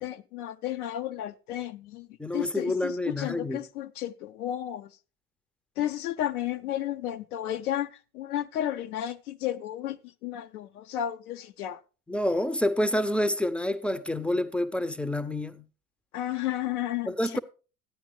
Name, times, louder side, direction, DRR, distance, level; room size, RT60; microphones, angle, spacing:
voice 1, 0.0-2.1 2.3-4.9 5.8-11.8 16.1-17.4, left 12 dB, 80° left, 0.6 m, -33 dB
voice 2, 2.2-3.6 12.1-15.7 17.1-17.4, left 1 dB, 5° left, 0.4 m, -28 dB
13.5 x 9.4 x 3.0 m
hypercardioid pair, 70°, 44 cm